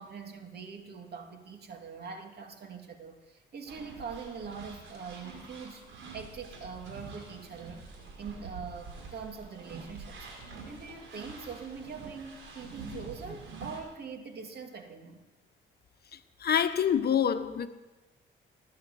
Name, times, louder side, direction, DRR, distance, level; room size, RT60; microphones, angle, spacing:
voice 1, 0.0-5.8 6.1-7.8 8.2-15.2, right 5 dB, 55° right, 2.7 m, -43 dB
sound 1, 3.7-13.8, right 4 dB, 75° right, 5.2 m, -46 dB
voice 2, 16.1-17.7, left 8 dB, 55° left, 1.2 m, -27 dB
19.0 x 9.5 x 7.8 m
cardioid pair, 90°, 20 cm